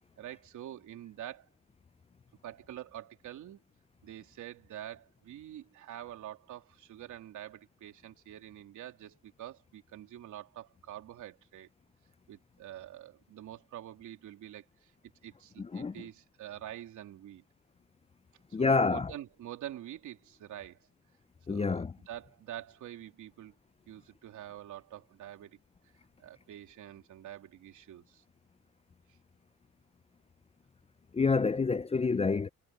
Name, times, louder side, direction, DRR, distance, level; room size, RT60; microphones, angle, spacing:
voice 1, 0.2-1.5 2.4-3.6 4.0-11.7 12.3-14.9 15.2-17.4 18.6-20.8 21.5-23.5 23.9-25.6 26.2-28.2, right 12 dB, 75° right, 3.4 m, -46 dB
voice 2, 15.6-15.9 18.5-19.1 21.5-21.9 31.1-32.5, left 4 dB, 20° left, 0.5 m, -28 dB
cardioid pair, 90°, 30 cm